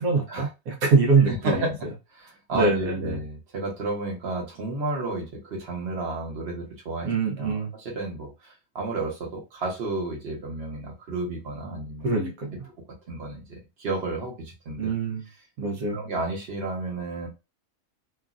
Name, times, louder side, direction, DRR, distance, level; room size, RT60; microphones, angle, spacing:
voice 1, 0.0-1.9 2.5-3.2 7.0-7.7 12.0-12.6 14.8-15.3 15.6-16.0, right 4 dB, 80° right, 1 dB, 1.2 m, -24 dB
voice 2, 1.3-7.1 7.4-12.1 13.1-14.9 15.9-17.3, right 2 dB, 50° right, -1 dB, 1.2 m, -32 dB
3.1 x 2.3 x 2.4 m, 0.26 s
omnidirectional pair, 1.5 m